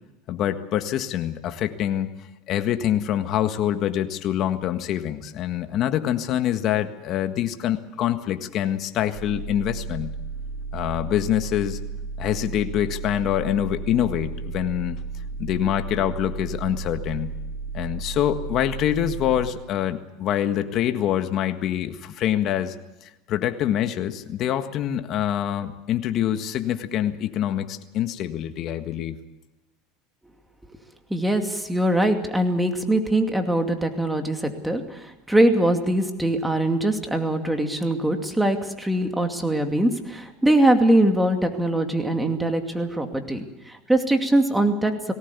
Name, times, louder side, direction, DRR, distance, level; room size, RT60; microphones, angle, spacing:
voice 1, 0.3-2.1 2.5-10.1 10.7-11.8 12.2-15.0 15.4-17.3 17.7-22.7 23.0-29.2, left 11 dB, 45° left, 8 dB, 1.6 m, -25 dB
sound 1, 9.1-19.5, right 4 dB, 50° right, 3.2 m, -34 dB
voice 2, 31.1-44.9, right 1 dB, 5° right, 5 dB, 2.4 m, -22 dB
19.5 x 17.5 x 8.4 m, 1.0 s
supercardioid pair, 125°, 0 cm